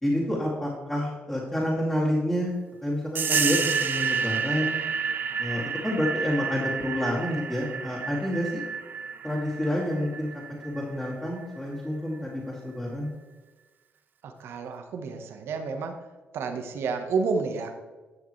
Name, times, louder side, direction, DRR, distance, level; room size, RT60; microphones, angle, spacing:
voice 1, 0.0-2.5 2.8-4.8 5.4-8.6 9.2-10.3 10.6-13.1, left 1 dB, 10° left, -6 dB, 2.6 m, -28 dB
sound 1, 3.2-11.4, right 6 dB, 50° right, 0.6 m, -30 dB
voice 2, 14.2-16.0 16.3-17.7, right 4 dB, 75° right, 5 dB, 1.2 m, -30 dB
12.0 x 6.6 x 3.3 m, 1.2 s
cardioid pair, 85°, 4 cm